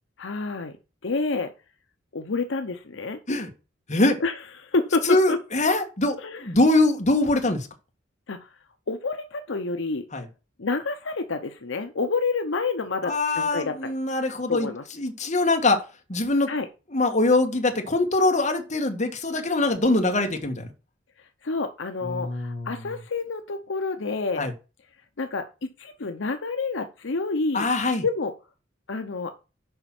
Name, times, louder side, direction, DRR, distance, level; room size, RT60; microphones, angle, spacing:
voice 1, 0.2-0.8 1.0-1.5 2.1-3.2 4.2-5.4 6.2-6.5 8.3-8.5 8.9-10.1 10.6-13.9 14.5-14.8 16.5-16.7 21.4-24.5 25.2-27.7 28.0-28.3 28.9-29.3, left 3 dB, 70° left, 6 dB, 0.8 m, -28 dB
voice 2, 5.1-7.7 10.1-10.2 13.0-14.7 15.0-15.8 16.1-16.5 16.9-20.7 22.1-22.7 24.4-24.5 27.5-28.0, left 2 dB, 40° left, 4 dB, 1.6 m, -23 dB
6.8 x 5.4 x 5.9 m, 0.31 s
head